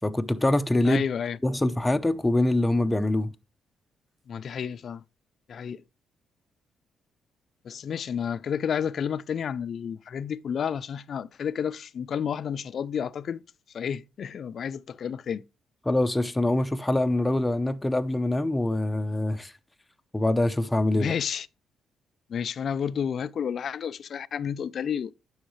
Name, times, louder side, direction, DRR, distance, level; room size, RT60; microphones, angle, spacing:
voice 1, 0.0-1.0 1.4-3.3 15.8-19.5 20.1-21.1, left 1 dB, 10° left, 0.7 m, -24 dB
voice 2, 0.8-1.4 4.3-5.0 5.5-5.8 7.6-13.4 13.7-15.4 20.9-21.5 22.3-25.1, left 7 dB, 55° left, 0.5 m, -31 dB
10.0 x 6.4 x 3.2 m
cardioid pair, 90°, 0 cm